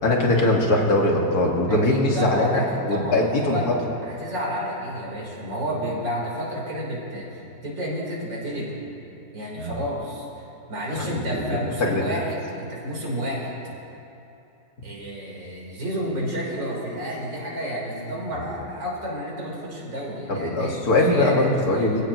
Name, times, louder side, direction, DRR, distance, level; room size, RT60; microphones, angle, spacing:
voice 1, 0.0-3.7 9.6-9.8 10.9-12.2 20.3-22.0, left 1 dB, 55° left, -1 dB, 2.4 m, -22 dB
voice 2, 1.7-3.7 4.0-8.7 9.3-10.3 10.7-13.6 14.8-22.0, equal, 85° right, -4 dB, 4.7 m, -30 dB
26.5 x 16.0 x 3.1 m, 2.9 s
omnidirectional pair, 1.9 m